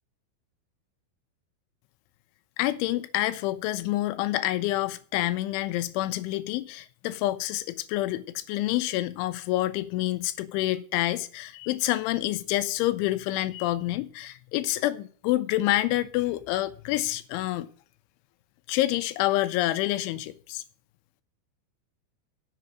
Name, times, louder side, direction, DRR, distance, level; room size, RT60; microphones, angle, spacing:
voice 1, 2.6-17.7 18.7-20.6, left 16 dB, 80° left, 2.9 m, -27 dB
7.9 x 7.5 x 8.1 m
omnidirectional pair, 5.9 m